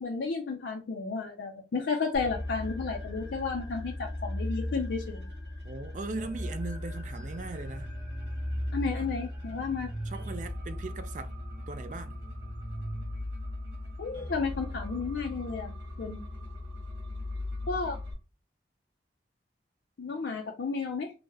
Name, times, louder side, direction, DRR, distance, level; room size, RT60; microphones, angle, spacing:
voice 1, 0.0-5.3 8.7-9.9 14.0-16.2 17.7-18.0 20.0-21.1, left 4 dB, 80° left, 0.4 m, -33 dB
sound 1, 2.1-18.1, left 1 dB, 85° right, 1.3 m, -37 dB
voice 2, 5.6-7.9 9.0-9.1 10.1-11.3 11.7-12.2, right 3 dB, 45° right, 0.4 m, -39 dB
3.3 x 2.1 x 3.3 m
head